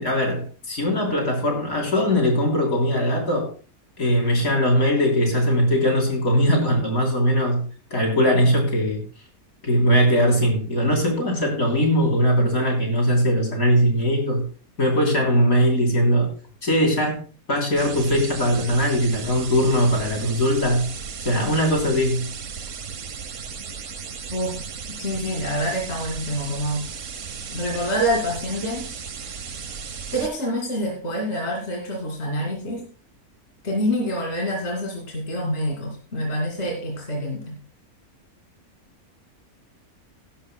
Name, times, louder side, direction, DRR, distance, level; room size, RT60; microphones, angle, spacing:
voice 1, 0.0-3.5 4.0-9.0 9.6-14.5 14.8-16.3 16.6-17.2 17.5-20.9 21.3-22.3, equal, 70° left, 1 dB, 3.8 m, -20 dB
sound 1, 17.8-30.3, right 6 dB, 60° right, 1.3 m, -35 dB
voice 2, 24.9-26.8 27.5-28.9 30.1-32.9 33.6-37.6, equal, 50° left, -1 dB, 2.7 m, -26 dB
17.5 x 11.5 x 2.2 m, 0.38 s
omnidirectional pair, 1.6 m